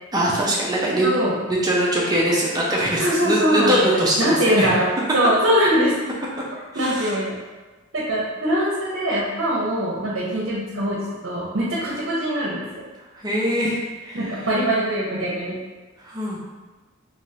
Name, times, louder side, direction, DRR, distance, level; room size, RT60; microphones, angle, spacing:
voice 1, 0.1-1.2 1.5-4.7 6.7-7.1 13.2-14.2 16.0-16.4, right 1 dB, 20° right, -4 dB, 0.6 m, -22 dB
voice 2, 0.9-1.3 3.0-6.0 6.7-7.4 7.9-12.8 14.1-15.6, equal, 60° right, -5 dB, 0.8 m, -22 dB
3.5 x 3.0 x 2.8 m, 1.2 s
head